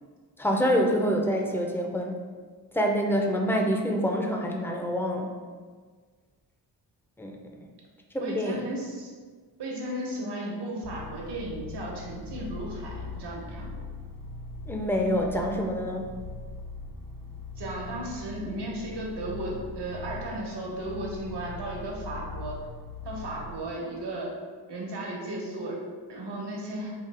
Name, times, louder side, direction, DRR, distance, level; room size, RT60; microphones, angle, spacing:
voice 1, 0.4-2.2 2.7-5.3 7.2-7.4 8.1-8.6 14.7-16.1, equal, 5° left, 1 dB, 0.6 m, -26 dB
voice 2, 8.2-9.1 9.6-13.9 17.6-22.5 23.0-24.3 24.7-25.8 26.1-26.9, right 1 dB, 70° right, -3 dB, 1.1 m, -35 dB
sound 1, 10.8-23.6, left 3 dB, 50° left, 1.0 m, -41 dB
4.8 x 2.7 x 3.4 m, 1.5 s
cardioid pair, 65°, 43 cm